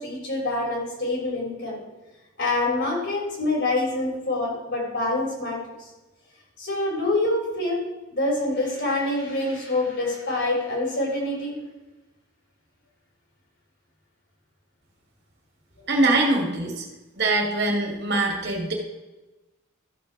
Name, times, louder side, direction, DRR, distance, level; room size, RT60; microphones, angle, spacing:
voice 1, 0.0-1.7 2.4-5.6 6.6-7.8 8.1-11.5, left 2 dB, 55° left, -1 dB, 3.5 m, -26 dB
voice 2, 15.9-16.8 17.2-18.7, right 2 dB, 50° right, 0 dB, 2.3 m, -23 dB
13.5 x 4.5 x 6.1 m, 1.1 s
head